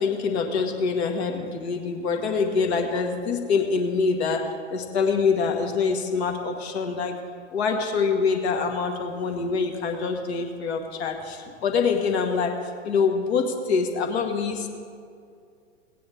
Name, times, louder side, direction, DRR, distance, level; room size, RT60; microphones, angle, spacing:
voice 1, 0.0-4.4 4.7-7.2 7.5-12.5 12.8-14.7, left 5 dB, 60° left, 4 dB, 1.5 m, -25 dB
17.0 x 9.3 x 3.4 m, 2.3 s
figure-of-eight pair, 100°, 36 cm